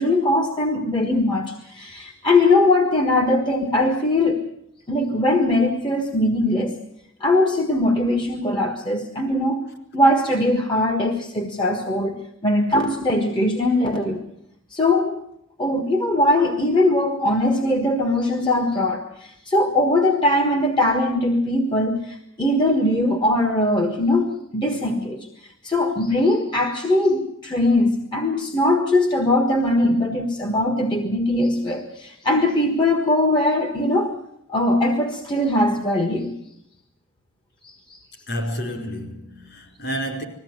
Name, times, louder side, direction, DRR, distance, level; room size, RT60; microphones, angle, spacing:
voice 1, 0.0-4.4 4.9-6.8 7.2-9.6 9.9-12.2 12.4-14.2 14.7-15.2 15.6-25.3 25.6-34.1 34.5-36.3 37.6-38.0, left 1 dB, 20° left, 1.5 m, -20 dB
voice 2, 38.3-40.2, equal, 50° left, 4.9 m, -30 dB
21.0 x 15.0 x 9.5 m
head